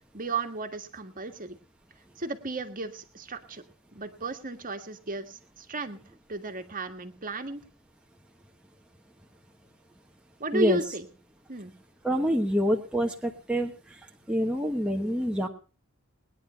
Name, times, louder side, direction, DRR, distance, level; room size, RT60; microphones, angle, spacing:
voice 1, 0.1-1.6 2.2-3.6 3.9-6.0 6.3-7.6 10.4-11.1 11.5-11.7, right 2 dB, 40° right, 6 dB, 1.7 m, -33 dB
voice 2, 12.0-13.7 14.3-15.5, equal, 5° right, 1 dB, 1.2 m, -26 dB
20.0 x 10.0 x 5.6 m, 0.38 s
head